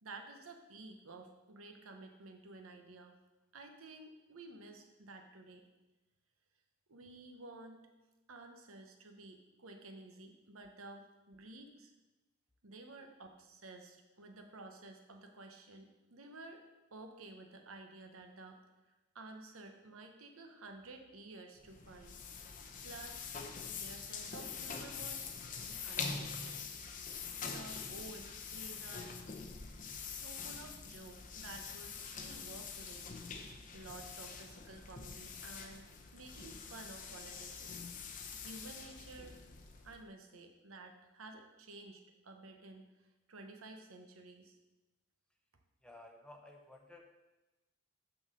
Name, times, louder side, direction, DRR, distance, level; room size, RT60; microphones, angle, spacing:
voice 1, 0.0-3.1 3.5-5.6 6.9-7.8 8.3-11.9 12.6-16.6 16.9-18.6 19.1-22.2 22.4-22.5 22.8-23.3 23.7-25.4 25.8-26.6 27.4-29.1 30.0-33.1 33.7-37.9 38.2-39.4 39.8-44.6, right 2 dB, 90° right, 4 dB, 1.1 m, -52 dB
sound 1, 21.6-40.1, left 5 dB, 40° left, 0.7 m, -45 dB
voice 2, 45.8-47.2, left 2 dB, 5° left, 2 dB, 0.7 m, -55 dB
6.1 x 5.4 x 6.6 m, 1.1 s
head